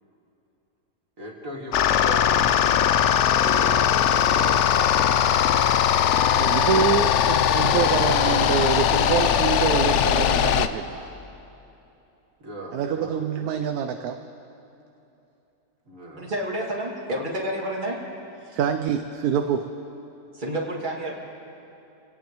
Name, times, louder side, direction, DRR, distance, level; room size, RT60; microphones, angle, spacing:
voice 1, 1.2-5.2 6.7-6.8 12.4-13.2 15.9-16.3, right 2 dB, 50° right, -2 dB, 2.5 m, -38 dB
sound 1, 1.7-10.7, left 9 dB, 85° left, 0.6 m, -20 dB
voice 2, 6.3-11.1 12.7-14.2 18.5-19.6, right 8 dB, 70° right, 7 dB, 1.1 m, -26 dB
voice 3, 16.2-18.0 18.4-18.6 20.3-21.2, right 1 dB, 25° right, -3 dB, 2.3 m, -29 dB
27.0 x 17.5 x 3.0 m, 2.9 s
omnidirectional pair, 1.8 m